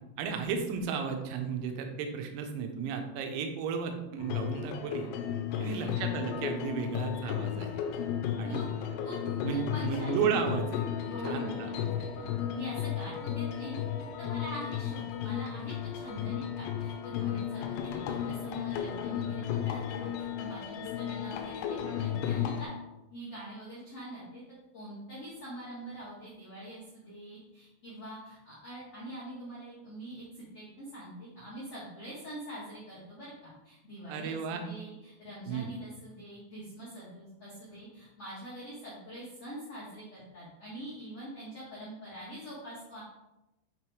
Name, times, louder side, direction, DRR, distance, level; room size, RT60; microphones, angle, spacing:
voice 1, 0.2-5.1 5.6-7.8 8.4-8.6 9.4-10.8 11.2-12.3 34.1-34.7 35.5-35.7, right 6 dB, 90° right, 4 dB, 3.5 m, -34 dB
sound 1, 4.2-22.7, left 9 dB, 85° left, 3.4 m, -34 dB
voice 2, 5.6-6.0 8.4-8.7 9.0-9.2 9.5-10.2 11.0-11.7 12.5-22.7 23.1-24.4 24.7-43.0, right 1 dB, 65° left, -9 dB, 1.5 m, -44 dB
8.6 x 3.1 x 4.6 m, 0.98 s
omnidirectional pair, 5.9 m